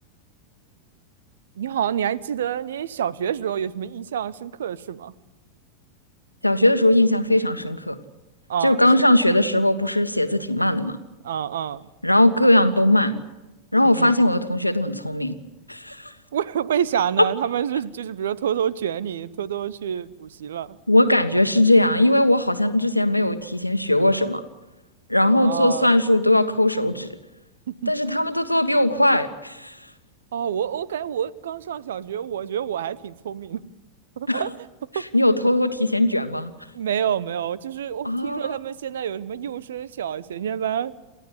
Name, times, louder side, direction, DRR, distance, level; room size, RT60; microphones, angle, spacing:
voice 1, 1.6-5.1 8.5-8.8 11.2-11.9 13.8-14.2 16.3-20.8 25.4-25.9 27.7-27.9 30.3-33.6 34.2-34.5 34.9-35.0 36.7-40.9, right 9 dB, 60° right, 20 dB, 0.8 m, -28 dB
voice 2, 6.4-8.0 8.6-11.0 12.0-13.2 13.7-15.3 15.7-16.1 20.9-24.4 25.1-27.1 27.9-29.8 34.3-34.4 34.9-36.5 38.0-38.6, left 1 dB, 90° left, 8 dB, 1.5 m, -19 dB
29.0 x 13.5 x 9.6 m, 1.1 s
figure-of-eight pair, 90°, 0 cm